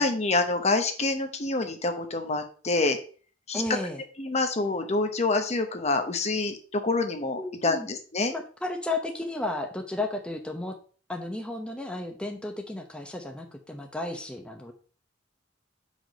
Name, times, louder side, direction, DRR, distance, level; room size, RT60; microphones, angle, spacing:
voice 1, 0.0-3.0 3.5-3.8 4.2-8.3, left 3 dB, 35° left, 6 dB, 1.0 m, -27 dB
voice 2, 3.5-4.0 7.4-7.9 8.3-10.8 11.1-14.7, left 2 dB, 5° left, 2 dB, 0.8 m, -33 dB
6.0 x 5.1 x 5.2 m, 0.41 s
head